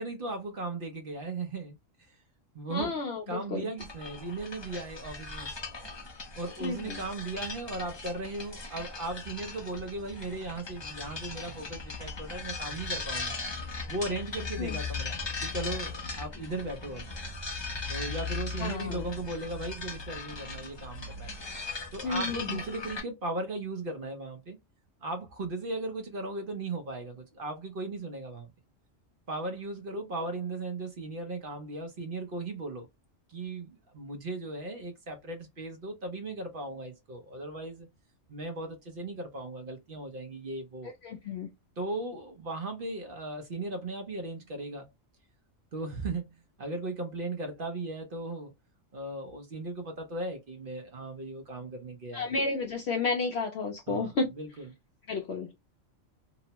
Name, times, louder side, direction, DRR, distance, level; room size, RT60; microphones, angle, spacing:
voice 1, 0.0-1.8 2.1-2.2 2.5-3.0 3.3-5.5 6.4-13.4 13.9-17.1 17.9-21.3 21.9-24.6 25.0-28.5 29.3-32.9 33.3-37.9 38.3-40.9 41.8-44.9 45.7-48.5 48.9-52.3 53.9-54.1 54.4-54.7, right 2 dB, 50° right, 0.8 m, -37 dB
voice 2, 2.7-3.7 6.6-7.0 14.6-14.8 18.6-19.0 22.0-22.6 40.8-41.5 52.1-54.3 55.1-55.5, left 4 dB, 65° left, 0.7 m, -32 dB
sound 1, 3.8-23.0, left 3 dB, 30° left, 0.5 m, -38 dB
2.9 x 2.1 x 2.8 m
omnidirectional pair, 1.3 m